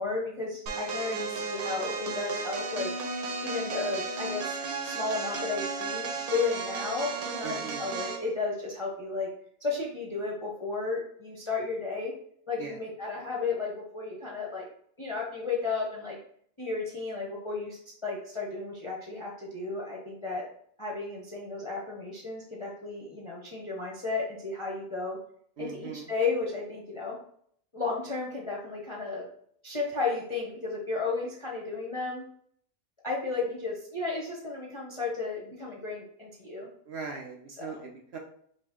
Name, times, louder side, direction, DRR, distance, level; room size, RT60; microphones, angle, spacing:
voice 1, 0.0-2.9 3.4-9.3 9.6-12.1 12.5-14.7 15.0-16.2 16.6-20.5 20.8-25.2 25.6-27.2 27.7-29.3 29.6-32.3 33.0-36.7 37.6-37.8, left 4 dB, 30° left, -3 dB, 0.5 m, -33 dB
sound 1, 0.7-8.3, right 4 dB, 85° right, 1.3 m, -34 dB
voice 2, 7.4-7.9 12.6-12.8 25.6-26.1 36.9-38.2, right 5 dB, 60° right, 1 dB, 0.8 m, -40 dB
5.5 x 2.1 x 3.6 m, 0.64 s
omnidirectional pair, 1.5 m